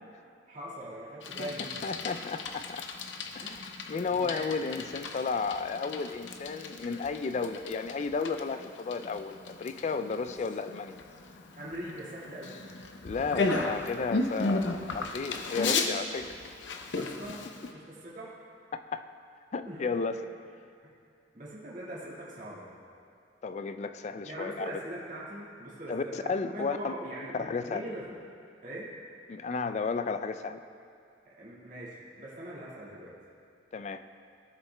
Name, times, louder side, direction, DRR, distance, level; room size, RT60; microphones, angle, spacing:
voice 1, 0.5-1.7 3.4-3.6 4.1-4.7 11.6-12.7 17.0-18.3 19.7-20.0 20.8-20.9 21.3-22.7 24.2-28.1 28.6-28.9 31.4-33.1, right 1 dB, 45° right, -8 dB, 2.0 m, -41 dB
Bicycle, 1.2-17.7, left 3 dB, 80° left, 0.6 m, -35 dB
voice 2, 1.8-2.8 3.3-3.6 3.9-11.0 13.0-16.4 18.7-19.0 19.5-20.2 23.4-24.7 25.9-26.9 27.3-27.8 29.3-30.6 33.7-34.0, left 4 dB, 40° left, 10 dB, 0.3 m, -33 dB
16.5 x 7.0 x 2.2 m, 2.4 s
head